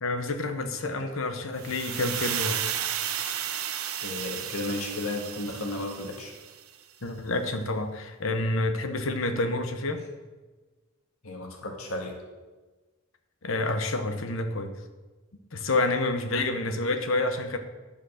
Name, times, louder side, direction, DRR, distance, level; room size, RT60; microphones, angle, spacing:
voice 1, 0.0-2.6 7.0-10.0 13.4-14.7 15.5-17.6, left 2 dB, 65° left, 7 dB, 1.0 m, -28 dB
sound 1, 1.6-6.6, right 10 dB, 80° right, 0.7 m, -33 dB
voice 2, 4.0-6.3 11.2-12.2, left 2 dB, 85° left, 1 dB, 1.8 m, -34 dB
11.0 x 5.2 x 6.5 m, 1.3 s
head